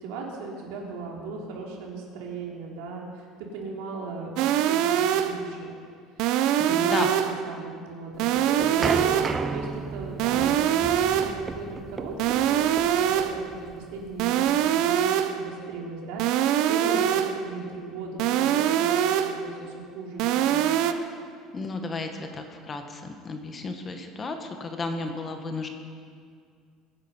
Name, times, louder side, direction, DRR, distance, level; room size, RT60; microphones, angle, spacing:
voice 1, 0.0-5.7 6.2-6.3 6.6-7.2 7.4-20.7, right 3 dB, 85° right, -1 dB, 3.4 m, -38 dB
sound 1, 4.4-5.5 6.2-7.5 8.2-9.5 10.2-11.5 12.2-13.5 14.2-15.5 16.2-17.5 18.2-19.5 20.2-20.9, right 10 dB, 55° right, 0.7 m, -23 dB
voice 2, 6.6-7.1 21.5-25.7, left 3 dB, 20° left, 5 dB, 1.1 m, -33 dB
sound 2, 8.2-15.0, right 4 dB, 15° right, 0.5 m, -34 dB
22.5 x 9.9 x 5.5 m, 2.2 s
cardioid pair, 170°, 0 cm